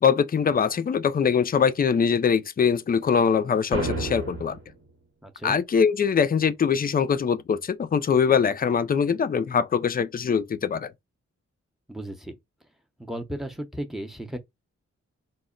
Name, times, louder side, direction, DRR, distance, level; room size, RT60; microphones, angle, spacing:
voice 1, 0.0-4.6 5.4-10.9, left 6 dB, 30° left, 0.4 m, -22 dB
sound 1, 3.7-4.7, right 3 dB, 55° right, 1.1 m, -30 dB
voice 2, 5.2-5.6 11.9-12.4 13.0-14.4, right 1 dB, ahead, 0.6 m, -35 dB
2.1 x 2.0 x 3.7 m
cardioid pair, 55°, 29 cm